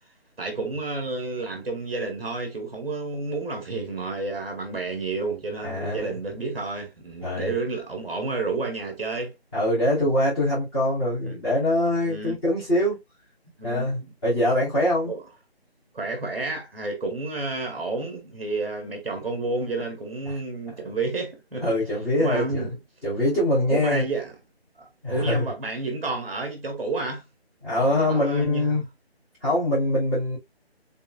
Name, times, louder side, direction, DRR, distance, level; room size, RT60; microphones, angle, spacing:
voice 1, 0.4-9.3 11.2-11.4 12.1-12.4 13.6-14.1 15.1-15.2 15.9-21.7 22.2-22.8 23.7-24.3 24.8-27.2 27.8-28.8, right 3 dB, ahead, 1.5 m, -30 dB
voice 2, 5.6-6.1 7.2-7.5 9.5-13.0 13.6-15.1 20.3-20.4 21.6-22.7 23.0-24.0 25.0-25.5 27.6-28.8 29.4-30.4, left 1 dB, 25° left, 3.0 m, -23 dB
5.6 x 4.0 x 2.3 m
figure-of-eight pair, 160°, 32 cm